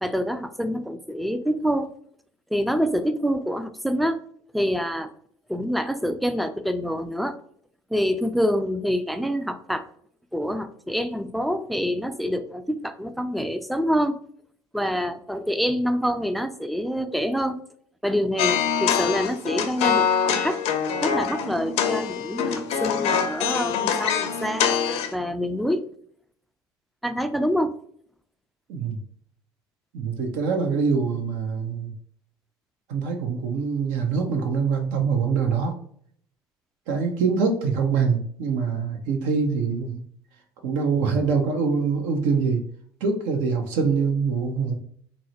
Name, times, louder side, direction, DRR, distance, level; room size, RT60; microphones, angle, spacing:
voice 1, 0.0-1.9 2.5-4.2 4.5-5.1 5.5-7.4 7.9-9.8 10.3-14.2 14.7-17.6 18.0-20.6 21.0-24.7 25.1-25.9 27.0-27.8, equal, ahead, 10 dB, 0.3 m, -26 dB
sound 1, 18.4-25.1, left 7 dB, 60° left, 0.5 m, -24 dB
voice 2, 29.9-31.9 32.9-35.7 36.9-40.0 40.6-42.6 43.0-44.7, right 5 dB, 65° right, 4 dB, 0.5 m, -24 dB
3.9 x 2.0 x 2.8 m, 0.62 s
hypercardioid pair, 65°, 13 cm